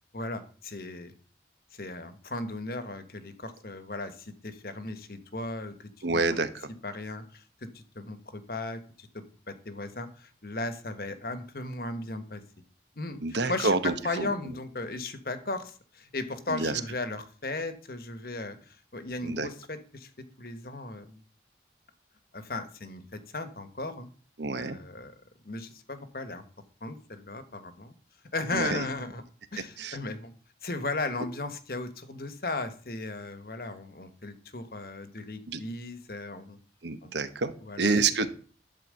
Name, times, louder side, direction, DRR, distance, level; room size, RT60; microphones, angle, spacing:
voice 1, 0.1-1.1 1.7-6.2 6.8-7.4 7.7-12.4 13.0-13.8 14.0-20.1 20.4-21.2 22.3-24.1 24.5-25.1 25.4-26.4 26.8-27.9 28.3-29.2 29.5-30.3 30.6-36.6 37.0-37.2 37.6-38.0, left 2 dB, 55° left, 10 dB, 1.2 m, -36 dB
voice 2, 6.0-6.7 13.2-14.5 16.5-16.8 19.2-19.5 24.4-24.8 28.5-28.9 29.8-30.0 35.5-35.6 36.8-38.3, right 3 dB, 80° right, 11 dB, 1.1 m, -28 dB
11.5 x 4.5 x 7.6 m, 0.42 s
head